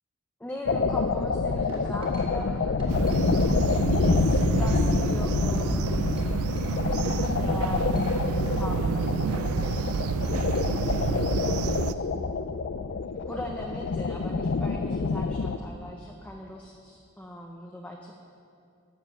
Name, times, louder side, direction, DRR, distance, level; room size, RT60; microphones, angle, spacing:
voice 1, 0.4-2.8 3.9-6.3 7.4-10.3 11.0-12.0 13.3-18.2, left 1 dB, 5° left, 0 dB, 0.6 m, -40 dB
sound 1, 0.6-15.6, left 4 dB, 55° left, 0.4 m, -27 dB
sound 2, 0.9-1.2 1.7-2.5 2.8-5.0 5.3-6.8 7.0-7.2 7.6-8.2 8.4-11.0, right 1 dB, 25° right, 2.2 m, -51 dB
sound 3, 2.9-11.9, right 5 dB, 85° right, 0.4 m, -29 dB
12.0 x 7.2 x 6.7 m, 2.4 s
head